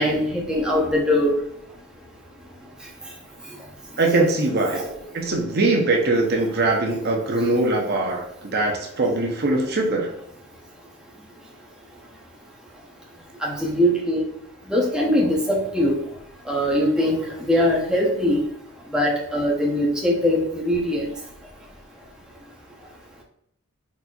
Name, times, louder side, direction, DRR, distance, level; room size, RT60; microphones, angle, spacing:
voice 1, 0.0-1.3 4.7-4.8 13.4-14.2 14.7-16.0 16.5-17.2 17.5-18.4 18.9-21.0, left 1 dB, 5° right, -3 dB, 0.7 m, -21 dB
voice 2, 4.0-4.8 5.1-10.1, right 2 dB, 45° right, 1 dB, 0.7 m, -22 dB
4.2 x 4.2 x 2.3 m, 0.76 s
head